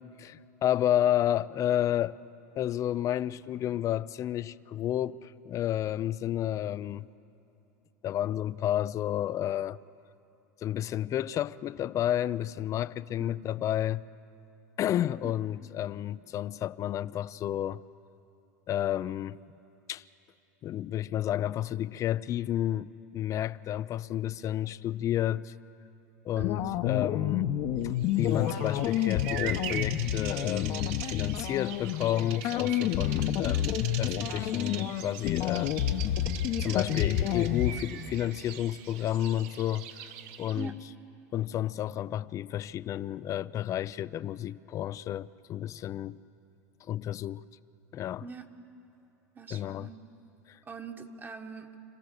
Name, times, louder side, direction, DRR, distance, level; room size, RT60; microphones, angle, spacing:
voice 1, 0.2-2.1 2.6-7.1 8.0-9.8 10.6-14.0 14.8-17.8 18.7-19.4 19.9-20.0 20.6-25.5 26.2-27.5 27.8-35.7 36.6-40.1 40.4-40.7 41.3-46.2 46.9-47.4 47.9-48.2 49.5-49.9 50.5-50.6, left 12 dB, 40° left, 0.5 m, -31 dB
voice 2, 26.3-26.7 36.7-37.0 40.5-40.8 48.2-48.5 49.3-50.0 50.6-51.7, right 4 dB, 25° right, 1.5 m, -43 dB
sound 1, 26.4-37.7, left 11 dB, 55° left, 1.1 m, -29 dB
Bird vocalization bird call bird song, 28.0-40.7, right 9 dB, 65° right, 1.3 m, -41 dB
26.5 x 15.0 x 6.7 m
hypercardioid pair, 100°, 8 cm